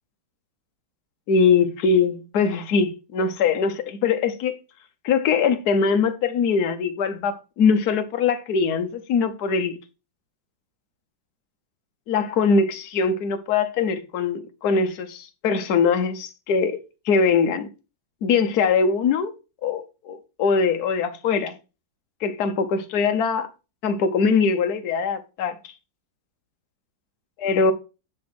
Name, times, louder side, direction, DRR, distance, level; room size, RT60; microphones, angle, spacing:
voice 1, 1.3-4.6 5.0-9.7 12.1-16.8 17.0-17.7 18.2-19.3 19.6-21.6 22.2-23.5 23.8-25.5 27.4-27.7, left 5 dB, 60° left, 1.3 m, -22 dB
10.5 x 3.5 x 5.9 m
omnidirectional pair, 2.1 m